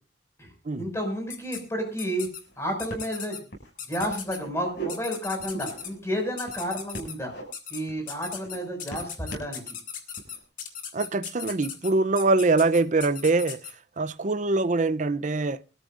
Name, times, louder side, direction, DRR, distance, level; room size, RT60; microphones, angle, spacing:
voice 1, 0.8-2.3 2.6-3.4 3.9-7.3 7.7-9.8, equal, 15° left, 5.7 m, -31 dB
sound 1, 1.3-1.6 2.0-2.4 2.8-3.4 3.8-4.4 4.9-5.9 6.4-7.1 7.5-7.8 8.1-13.7, left 8 dB, 50° left, 2.4 m, -37 dB
sound 2, 1.9-2.0 2.2-2.6 2.9-3.1 3.5-3.7 4.0-4.9 5.4-6.0 6.4-7.4 7.9-8.1 8.4-9.5 10.1-10.4, right 3 dB, 80° left, 6.5 m, -40 dB
voice 2, 10.9-13.6 14.0-15.6, right 3 dB, 45° right, 0.6 m, -23 dB
24.5 x 13.5 x 2.5 m
head